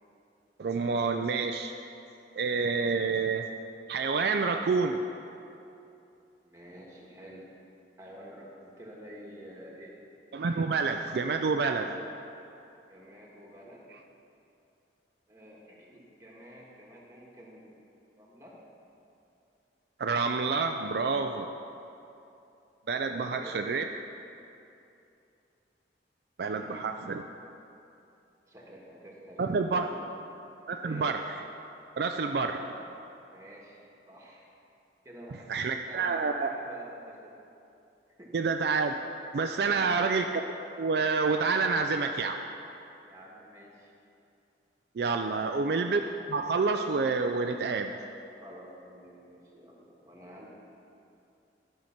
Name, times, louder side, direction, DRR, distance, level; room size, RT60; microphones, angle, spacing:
voice 1, 0.6-1.7 2.4-3.5 3.9-5.0 10.3-12.0 20.0-21.5 22.9-23.8 26.4-27.2 29.4-29.9 30.7-31.2 32.0-32.6 35.5-36.5 38.3-38.9 39.3-40.4 40.8-42.4 45.0-46.0 46.3-47.9, right 4 dB, 60° right, 5 dB, 0.4 m, -28 dB
voice 2, 6.4-7.5 8.0-10.0 12.9-13.9 15.3-17.8 18.2-18.6 23.1-23.7 26.5-26.8 28.5-30.1 30.8-31.1 32.3-32.8 33.3-33.8 34.1-34.4 35.0-37.3 38.2-38.3 39.5-39.9 43.0-43.9 45.2-45.5 48.4-50.5, equal, 15° right, -4 dB, 1.6 m, -49 dB
12.5 x 5.7 x 5.8 m, 2.7 s
head